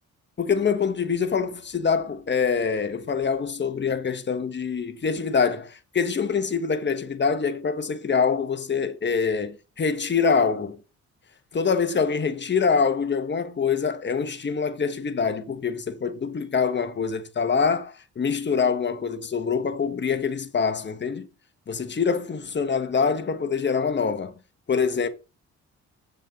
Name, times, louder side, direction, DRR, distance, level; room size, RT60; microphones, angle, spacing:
voice 1, 0.4-10.8 11.5-21.3 21.7-24.3 24.7-25.1, left 5 dB, 35° left, 1.4 m, -25 dB
8.6 x 7.3 x 3.8 m
cardioid pair, 90°, 30 cm